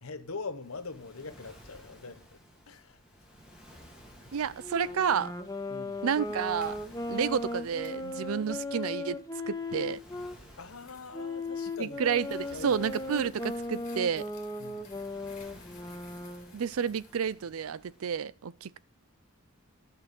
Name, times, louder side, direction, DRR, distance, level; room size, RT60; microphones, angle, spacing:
voice 1, 0.0-2.4 2.7-3.0 4.2-4.3 5.7-6.0 10.6-12.1 12.5-12.8 14.6-14.9, left 4 dB, 75° left, 1.0 m, -42 dB
Waves surf, 0.6-18.1, equal, 5° right, 2.0 m, -55 dB
voice 2, 4.3-5.4 6.0-6.8 7.1-9.2 9.5-10.0 11.8-14.3 16.5-18.8, right 7 dB, 75° right, 0.4 m, -30 dB
Wind instrument woodwind instrument, 4.6-10.4 11.1-16.5, left 2 dB, 15° left, 0.8 m, -37 dB
sound 1, 6.5-6.8 7.8-8.0 10.2-17.3, left 6 dB, 35° left, 2.0 m, -58 dB
11.5 x 5.7 x 5.3 m
head